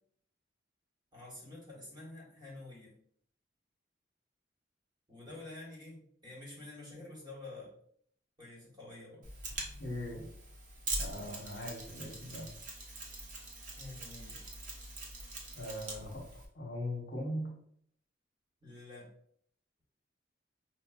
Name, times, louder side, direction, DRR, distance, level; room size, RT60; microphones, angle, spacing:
voice 1, 1.1-2.9 5.1-7.7 8.4-9.3 9.6-9.8 13.7-14.4 18.6-19.1, left 2 dB, 25° right, -4 dB, 1.1 m, -49 dB
Mechanisms, 9.2-16.5, right 2 dB, 45° right, 0.7 m, -43 dB
voice 2, 9.8-10.3 11.0-12.5 15.5-16.2 16.5-17.5, left 1 dB, 60° left, -1 dB, 0.9 m, -40 dB
5.1 x 2.1 x 2.3 m, 0.64 s
head